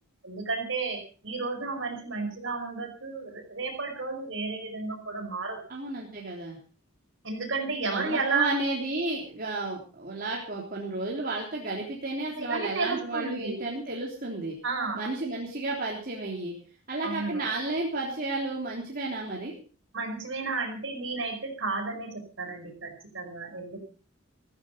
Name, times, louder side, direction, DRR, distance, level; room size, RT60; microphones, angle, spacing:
voice 1, 0.2-5.6 7.2-8.4 12.4-13.6 14.6-15.1 17.0-17.4 19.9-23.8, right 4 dB, 60° right, 4 dB, 5.0 m, -32 dB
voice 2, 5.7-6.6 7.9-14.6 14.9-16.5 16.9-19.5, right 2 dB, 45° right, -2 dB, 3.6 m, -32 dB
15.0 x 15.0 x 5.3 m, 0.39 s
head